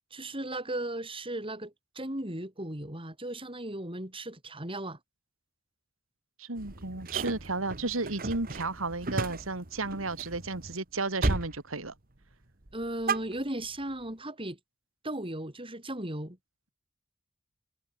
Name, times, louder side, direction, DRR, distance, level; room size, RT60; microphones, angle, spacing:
voice 1, 0.1-5.0 12.7-14.6 15.0-16.4, right 1 dB, 25° right, 7.1 m, -36 dB
voice 2, 6.4-11.9, right 3 dB, 80° right, 2.7 m, -33 dB
sound 1, 6.6-10.8 11.2-11.6 11.8-12.3 12.6-13.9, right 2 dB, 45° right, 1.7 m, -34 dB
head